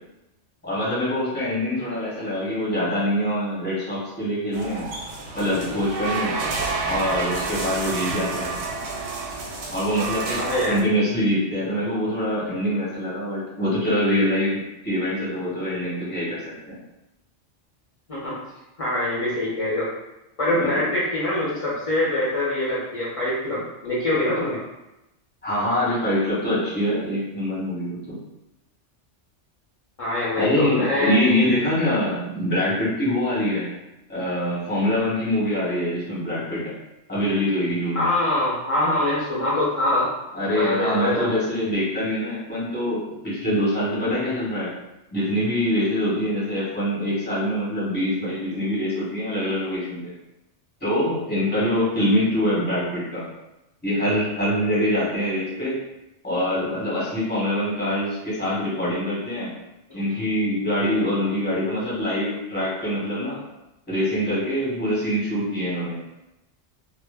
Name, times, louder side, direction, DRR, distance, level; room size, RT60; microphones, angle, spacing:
voice 1, 0.6-4.8 5.3-6.4 6.8-8.5 9.7-16.8 20.5-20.8 25.4-28.2 30.4-33.7 34.1-36.7 37.1-38.1 40.3-44.7 45.1-50.1 50.8-53.3 53.8-55.8 56.2-59.5 59.9-63.4 63.9-66.0, equal, 10° left, -9 dB, 0.8 m, -24 dB
sound 1, 4.5-10.8, right 4 dB, 85° right, 0.9 m, -29 dB
voice 2, 10.4-10.8 18.1-18.4 18.8-19.9 20.4-24.6 30.0-31.5 37.9-40.1 40.5-41.3 59.9-60.0, left 1 dB, 45° left, -8 dB, 0.5 m, -24 dB
2.0 x 2.0 x 3.3 m, 0.95 s
omnidirectional pair, 1.2 m